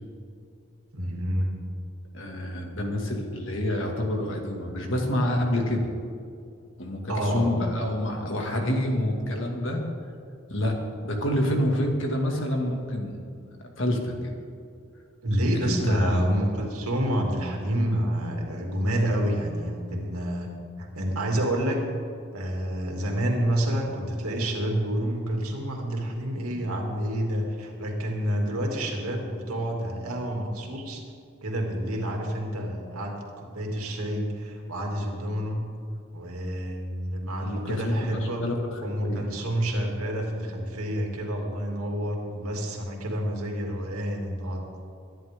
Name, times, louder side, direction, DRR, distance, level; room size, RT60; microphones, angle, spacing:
voice 1, 0.9-1.5 7.1-7.5 15.2-20.5 20.8-21.8 22.3-31.0 31.4-35.6 36.1-38.5 38.8-44.6, right 1 dB, 90° right, 0 dB, 2.7 m, -28 dB
voice 2, 2.1-5.9 6.8-9.8 10.5-10.7 11.0-13.2 13.8-14.3 15.6-16.2 28.4-28.5 37.4-39.3, left 1 dB, 60° left, 1 dB, 2.2 m, -28 dB
23.0 x 10.5 x 3.7 m, 2.4 s
head